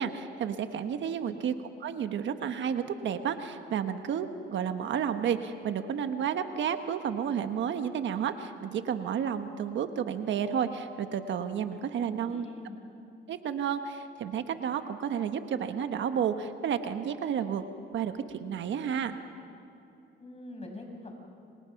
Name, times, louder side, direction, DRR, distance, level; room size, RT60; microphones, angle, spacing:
voice 1, 0.0-1.5 1.8-12.5 13.3-19.2, right 8 dB, 70° right, 8 dB, 1.3 m, -31 dB
voice 2, 12.1-12.8 20.2-21.1, left 2 dB, 30° left, 3 dB, 6.0 m, -44 dB
29.5 x 25.5 x 5.9 m, 2.8 s
cardioid pair, 90°, 20 cm